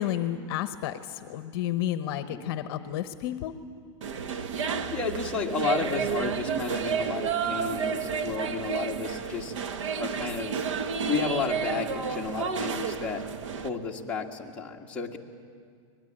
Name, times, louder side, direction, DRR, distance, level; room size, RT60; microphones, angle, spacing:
voice 1, 0.0-3.5, left 12 dB, 50° left, 10 dB, 1.0 m, -31 dB
sound 1, 4.0-13.7, right 6 dB, 85° right, 1.4 m, -31 dB
voice 2, 4.9-9.5 9.9-10.6 11.1-13.3 13.6-15.2, left 5 dB, 10° left, -3 dB, 1.7 m, -32 dB
24.5 x 20.5 x 8.8 m, 2.1 s
supercardioid pair, 160°, 16 cm